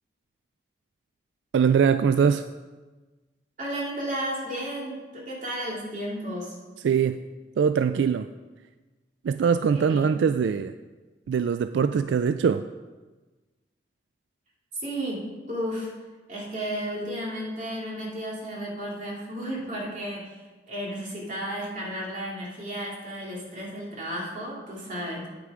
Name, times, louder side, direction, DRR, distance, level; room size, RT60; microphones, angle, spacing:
voice 1, 1.5-2.4 6.8-7.2 7.6-8.3 9.2-10.7 11.3-12.6, right 6 dB, 85° right, 11 dB, 0.3 m, -22 dB
voice 2, 3.6-6.6 9.7-10.2 14.7-15.9 16.3-25.3, equal, 45° right, -3 dB, 2.5 m, -33 dB
8.8 x 8.2 x 4.9 m, 1.3 s
head